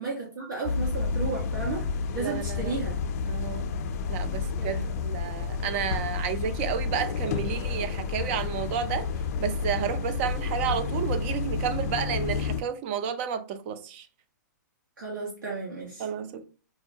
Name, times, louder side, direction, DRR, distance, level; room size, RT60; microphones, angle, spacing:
voice 1, 0.0-1.9 2.1-3.0 4.6-5.0 15.0-16.1, right 3 dB, 85° right, 1.2 m, -33 dB
sound 1, 0.6-12.6, left 5 dB, 50° left, 0.4 m, -30 dB
voice 2, 2.2-2.7 3.3-3.7 4.1-9.1 9.4-14.1 16.0-16.4, right 8 dB, 40° right, 0.4 m, -31 dB
4.6 x 2.1 x 2.7 m
hypercardioid pair, 140°, 10 cm